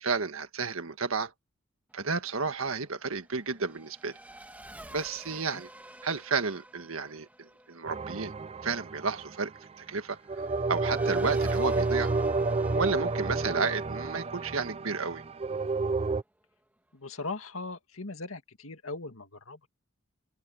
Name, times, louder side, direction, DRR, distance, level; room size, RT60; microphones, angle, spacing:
voice 1, 0.0-1.3 1.9-4.2 4.9-5.7 6.0-8.3 8.6-12.1 12.7-15.2, right 4 dB, 75° right, 1.6 m, -32 dB
Race car auto racing / Accelerating revving vroom, 1.9-16.0, right 1 dB, 10° right, 2.3 m, -51 dB
voice 2, 5.3-5.6 16.9-19.7, left 3 dB, 75° left, 2.2 m, -39 dB
sound 1, 7.9-9.6 10.3-16.2, right 3 dB, 30° right, 0.5 m, -30 dB
open air
head